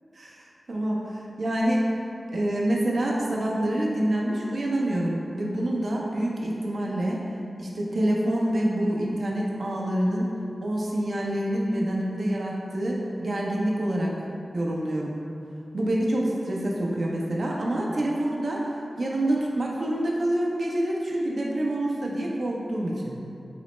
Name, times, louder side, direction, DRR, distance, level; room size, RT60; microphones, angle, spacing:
voice 1, 0.2-1.9 2.3-7.2 7.6-10.3 10.6-14.1 14.5-15.2 15.7-18.7 19.0-23.2, right 1 dB, 70° right, -3 dB, 0.6 m, -27 dB
4.0 x 3.0 x 3.2 m, 2.7 s
cardioid pair, 40°, 0 cm